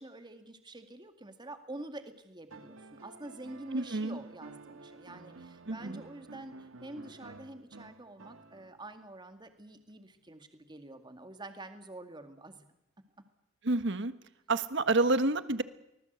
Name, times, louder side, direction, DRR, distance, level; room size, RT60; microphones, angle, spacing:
voice 1, 0.0-12.7, right 2 dB, 20° right, 7 dB, 2.2 m, -47 dB
sound 1, 2.5-8.9 10.4-10.5, right 3 dB, 80° right, 1.7 m, -52 dB
voice 2, 3.7-4.2 5.7-6.0 13.6-14.1 14.5-15.6, right 2 dB, 60° right, 12 dB, 1.4 m, -28 dB
25.0 x 19.5 x 8.1 m, 0.84 s
head